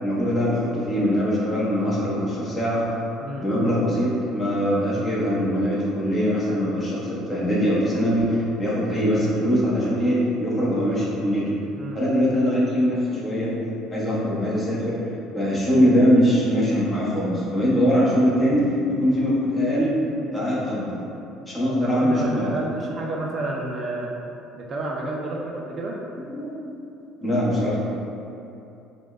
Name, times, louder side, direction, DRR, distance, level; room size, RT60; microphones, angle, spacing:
voice 1, 0.0-3.0 3.4-11.6 11.9-13.5 13.9-15.0 15.3-20.0 20.3-21.0 21.5-22.5 26.3-26.5 27.2-27.8, equal, 15° left, -7 dB, 0.8 m, -22 dB
voice 2, 21.8-24.1 24.6-26.0, right 2 dB, 35° right, -2 dB, 0.3 m, -30 dB
4.9 x 2.1 x 2.4 m, 2.8 s
cardioid pair, 135°, 0 cm